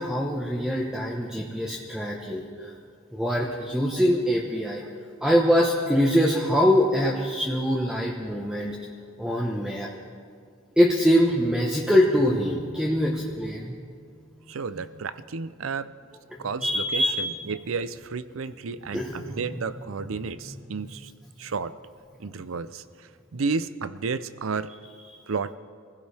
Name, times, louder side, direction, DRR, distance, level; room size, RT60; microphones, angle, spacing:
voice 1, 0.0-2.7 3.1-4.9 5.2-8.8 9.2-9.9 10.8-13.7 16.4-17.3 18.9-19.6, equal, 5° right, -2 dB, 1.0 m, -23 dB
voice 2, 14.5-15.9 16.4-21.1 21.4-21.7 22.2-22.8 23.3-24.7 25.3-25.5, right 4 dB, 75° right, 14 dB, 0.6 m, -32 dB
26.0 x 16.0 x 3.4 m, 2.2 s
head